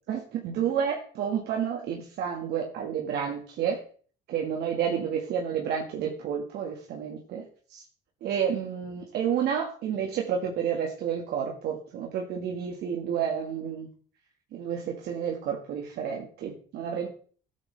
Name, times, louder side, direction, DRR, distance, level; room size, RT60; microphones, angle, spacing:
voice 1, 0.1-3.8 4.3-7.5 7.7-7.8 8.2-13.9 14.5-17.1, right 8 dB, 75° right, 1 dB, 1.8 m, -30 dB
12.5 x 8.5 x 3.4 m, 0.44 s
cardioid pair, 110°, 17 cm